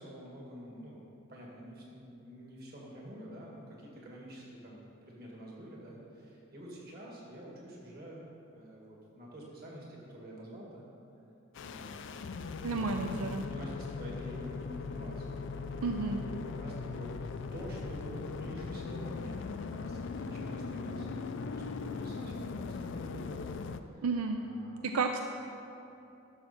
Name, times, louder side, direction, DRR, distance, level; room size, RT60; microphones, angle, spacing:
voice 1, 0.0-8.2 8.5-10.8 11.6-12.1 12.7-13.2 13.4-15.5 16.1-17.1 17.5-24.0 24.4-24.9, equal, 45° right, -3 dB, 2.0 m, -48 dB
sound 1, 11.5-23.8, left 4 dB, 55° left, 0.4 m, -39 dB
voice 2, 12.6-13.4 15.8-16.2 24.0-24.4 24.8-25.2, right 4 dB, 80° right, 5 dB, 0.4 m, -31 dB
12.0 x 6.3 x 4.4 m, 2.8 s
head